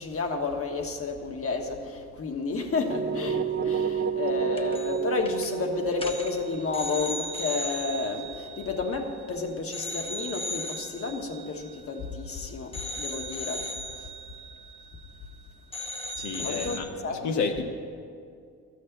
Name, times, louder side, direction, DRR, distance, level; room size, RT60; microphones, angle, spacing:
voice 1, 0.0-13.8 16.4-17.3, left 4 dB, 50° left, 3 dB, 1.5 m, -31 dB
sound 1, 2.9-8.8, right 7 dB, 35° right, 0.9 m, -31 dB
sound 2, 4.6-5.0 5.3-5.5 5.9-9.3 9.7-12.3 12.7-15.4 15.7-16.8, equal, 20° left, 1.0 m, -37 dB
voice 2, 16.1-17.6, left 5 dB, 75° left, 3 dB, 1.4 m, -30 dB
13.0 x 6.6 x 8.1 m, 2.3 s
cardioid pair, 90°, 30 cm